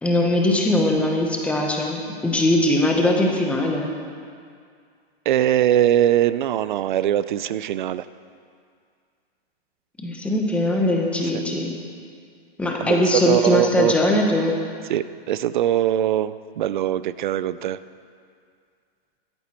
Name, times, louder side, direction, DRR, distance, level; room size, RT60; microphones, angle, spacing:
voice 1, 0.0-3.9 10.0-11.7 12.6-14.5, left 1 dB, 5° left, 1 dB, 1.0 m, -21 dB
voice 2, 5.3-8.1 12.8-13.9 14.9-17.8, right 11 dB, 50° right, 15 dB, 0.5 m, -21 dB
15.0 x 13.5 x 4.4 m, 2.2 s
hypercardioid pair, 160°, 32 cm